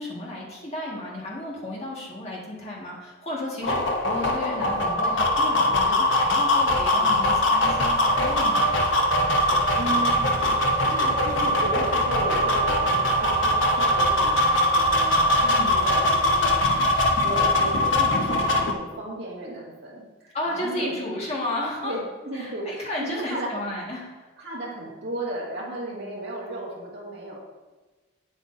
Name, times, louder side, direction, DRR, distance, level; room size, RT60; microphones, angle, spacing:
voice 1, 0.0-8.7 15.4-15.8 20.3-22.0 22.3-24.3, left 1 dB, 35° left, -4 dB, 1.8 m, -33 dB
sound 1, 3.6-18.7, left 1 dB, 80° left, 0.9 m, -22 dB
voice 2, 9.7-10.5 10.9-20.9 21.8-23.5 24.4-27.4, right 1 dB, 60° right, -4 dB, 2.2 m, -35 dB
9.0 x 7.9 x 2.7 m, 1.2 s
head